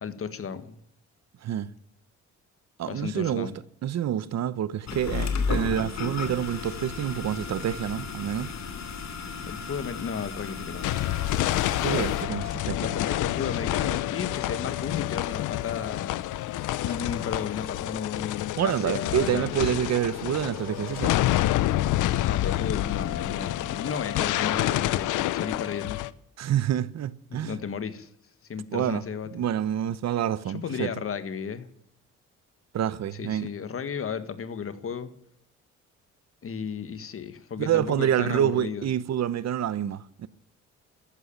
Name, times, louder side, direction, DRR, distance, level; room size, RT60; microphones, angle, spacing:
voice 1, 0.0-0.8 2.9-3.6 9.4-11.0 12.7-16.2 16.8-19.5 22.2-26.0 27.3-28.1 28.5-29.3 30.5-31.7 33.1-35.1 36.4-38.9, left 6 dB, 45° left, 1.7 m, -34 dB
voice 2, 2.8-3.5 3.8-8.5 11.8-12.8 18.6-21.1 26.4-27.5 28.7-29.0 29.3-30.9 32.7-33.5 37.6-40.3, right 10 dB, 60° right, 1.0 m, -27 dB
sound 1, 4.9-12.2, left 5 dB, 65° left, 2.7 m, -34 dB
sound 2, 10.8-26.1, left 14 dB, 85° left, 0.8 m, -28 dB
14.0 x 11.0 x 8.8 m
cardioid pair, 90°, 30 cm